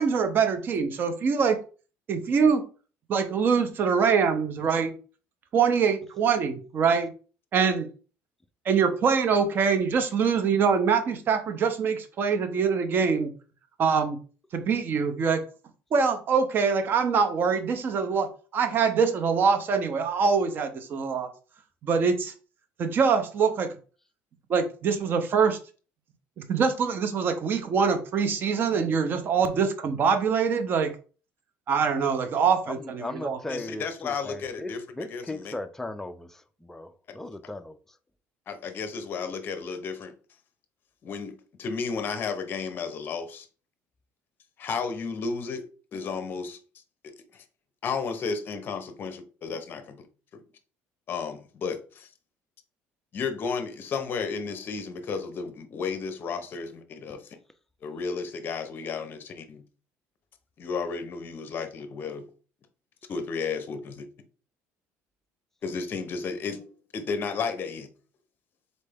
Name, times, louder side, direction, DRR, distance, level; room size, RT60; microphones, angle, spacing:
voice 1, 0.0-1.6 2.1-2.6 3.1-4.9 5.5-7.1 7.5-7.9 8.7-13.3 13.8-14.2 14.5-15.4 15.9-21.3 21.8-22.3 22.8-23.7 24.5-25.6 26.4-30.9 31.7-33.4, right 6 dB, 40° right, 0.6 m, -24 dB
voice 2, 32.7-34.7 35.0-37.8, left 2 dB, 5° left, 0.4 m, -37 dB
voice 3, 33.5-35.5 38.5-40.1 41.0-43.5 44.6-45.7 45.9-46.6 47.0-47.4 47.8-50.1 51.1-52.1 53.1-57.3 57.8-59.6 60.6-62.3 63.1-64.1 65.6-67.9, left 5 dB, 40° left, 0.7 m, -33 dB
4.1 x 3.2 x 3.4 m
cardioid pair, 140°, 6 cm